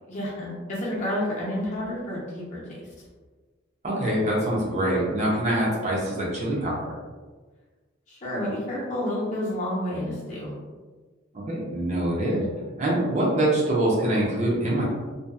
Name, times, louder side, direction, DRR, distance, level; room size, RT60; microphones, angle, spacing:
voice 1, 0.1-2.9 8.1-10.5, left 1 dB, 40° left, -6 dB, 0.7 m, -30 dB
voice 2, 3.8-6.9 11.3-12.4 12.8-14.8, right 1 dB, 35° right, -4 dB, 0.6 m, -24 dB
2.6 x 2.4 x 2.3 m, 1.4 s
head